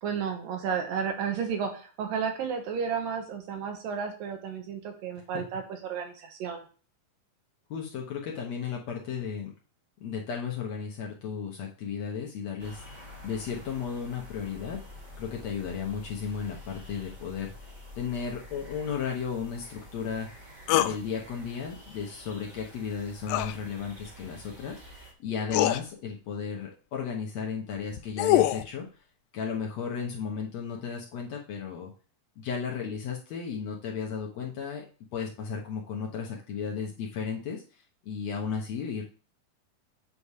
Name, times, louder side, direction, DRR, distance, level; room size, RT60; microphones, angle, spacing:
voice 1, 0.0-6.6, right 6 dB, 80° right, 4 dB, 2.9 m, -32 dB
voice 2, 7.7-9.5 10.0-12.8 13.2-14.8 15.2-20.3 20.7-28.9 29.3-31.9 32.4-34.8 35.1-37.6 38.0-39.0, left 6 dB, 65° left, -1 dB, 1.9 m, -34 dB
sound 1, 12.6-25.1, left 1 dB, 35° right, 0.6 m, -48 dB
sound 2, 20.7-21.0 23.3-23.5 24.9-25.0 25.5-25.8 27.8-28.7, left 14 dB, 85° left, 2.2 m, -24 dB
8.5 x 3.3 x 5.5 m, 0.37 s
omnidirectional pair, 3.9 m